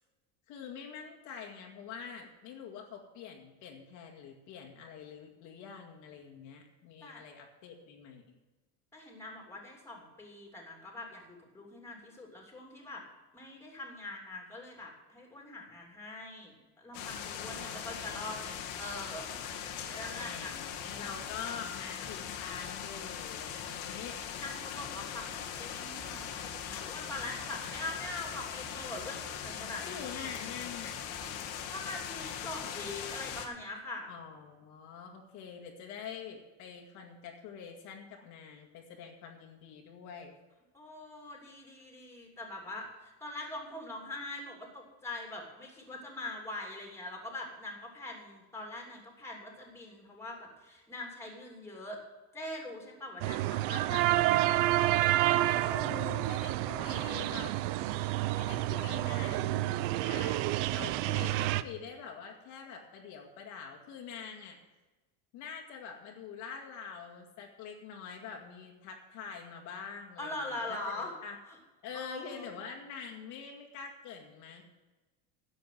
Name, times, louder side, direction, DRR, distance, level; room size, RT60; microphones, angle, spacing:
voice 1, 0.5-8.4 17.3-18.0 20.2-24.2 29.8-31.0 34.1-40.4 55.4-57.6 58.3-64.6 65.3-71.4 71.8-74.6, left 6 dB, 55° left, 2 dB, 2.0 m, -45 dB
voice 2, 8.9-13.0 13.3-20.5 20.9-21.2 23.4-23.7 24.4-30.3 31.7-34.1 40.7-52.0 52.3-54.2 70.2-71.1 71.5-71.6 71.9-72.5, left 2 dB, 5° left, 0 dB, 3.0 m, -43 dB
sound 1, 16.9-33.5, left 8 dB, 80° left, 1.9 m, -40 dB
sound 2, 53.2-61.6, right 16 dB, 65° right, 0.7 m, -29 dB
11.0 x 7.7 x 7.6 m, 1.2 s
cardioid pair, 150°, 35 cm